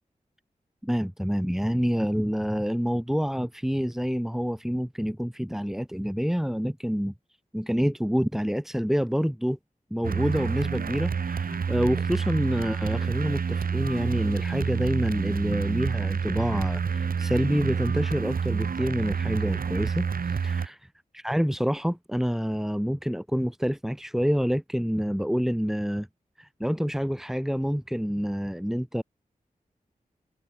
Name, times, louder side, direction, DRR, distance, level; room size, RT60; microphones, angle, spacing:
voice 1, 0.8-7.1 7.5-9.6 9.9-20.9 21.1-26.1 26.4-29.0, equal, 5° right, 6.8 m, -27 dB
sound 1, 10.0-20.7, right 6 dB, 90° right, 2.5 m, -28 dB
wide cardioid pair, 60°, 14 cm